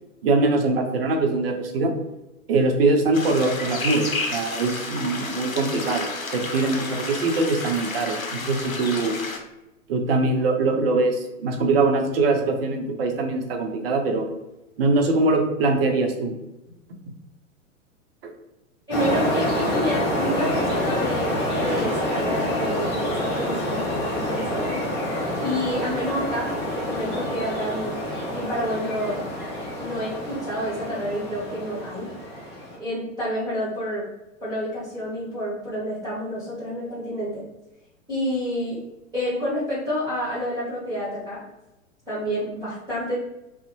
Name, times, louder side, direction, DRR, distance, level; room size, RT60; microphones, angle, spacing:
voice 1, 0.2-1.9 2.5-9.2 9.9-14.3 14.8-16.3 18.2-18.3, right 3 dB, 45° right, 4 dB, 0.6 m, -22 dB
sound 1, 3.1-9.4, left 3 dB, 85° left, 0.6 m, -31 dB
sound 2, 18.9-32.8, left 1 dB, 25° left, 0.8 m, -27 dB
voice 2, 18.9-24.8 25.4-28.0 28.3-29.2 29.8-32.1 32.8-34.0 34.4-37.4 38.1-38.8 39.1-41.4 42.1-43.2, equal, 10° right, -10 dB, 1.1 m, -29 dB
2.5 x 2.0 x 2.8 m, 0.95 s
figure-of-eight pair, 105°, 40 cm